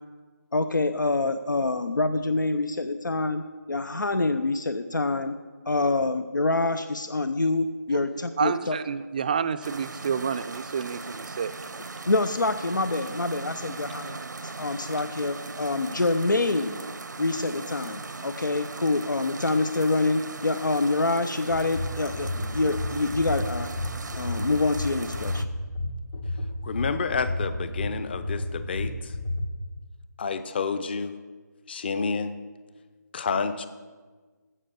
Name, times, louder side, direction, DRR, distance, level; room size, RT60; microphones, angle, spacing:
voice 1, 0.5-5.3 5.7-8.8 12.1-16.8 17.2-23.7 24.2-25.4, left 2 dB, 90° left, 11 dB, 0.7 m, -26 dB
voice 2, 8.4-11.5, right 7 dB, 25° right, 12 dB, 0.4 m, -29 dB
sound 1, 9.6-25.5, right 3 dB, 75° right, 0.7 m, -39 dB
sound 2, 21.5-29.4, left 2 dB, 70° left, 1.9 m, -31 dB
voice 3, 26.6-29.1 30.2-31.2 31.7-32.3 33.1-33.7, left 5 dB, 35° left, 12 dB, 0.7 m, -29 dB
14.5 x 5.5 x 6.9 m, 1.4 s
figure-of-eight pair, 160°, 10 cm